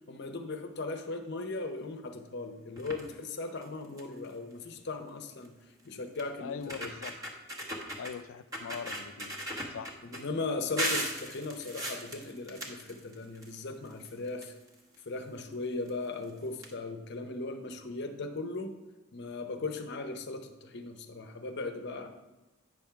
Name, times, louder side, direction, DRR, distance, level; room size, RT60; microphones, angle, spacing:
voice 1, 0.1-5.5 5.8-6.9 10.0-14.5 15.1-18.7 19.1-22.1, left 3 dB, 60° left, 0.7 m, -38 dB
sound 1, 2.8-3.1 3.6-3.7 4.0-4.3 5.4-5.5 6.2-6.3 6.6-8.1 8.5-10.2 10.8-13.5 13.8-15.0 15.9-16.0 16.2-16.3 16.6-16.7, equal, 20° right, 1.1 m, -37 dB
voice 2, 6.4-7.2 8.0-9.4 9.7-10.0, left 6 dB, 80° left, 0.4 m, -41 dB
9.2 x 3.5 x 5.7 m
head